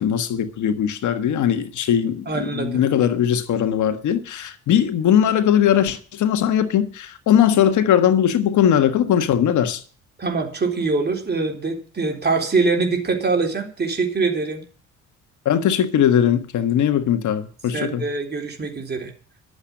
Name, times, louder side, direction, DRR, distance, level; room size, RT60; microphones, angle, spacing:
voice 1, 0.0-9.8 15.4-18.0, left 9 dB, 75° left, 1.5 m, -19 dB
voice 2, 2.3-2.8 10.2-14.6 17.7-19.1, right 4 dB, 35° right, 3.9 m, -23 dB
11.5 x 8.0 x 8.9 m
cardioid pair, 90°, 30 cm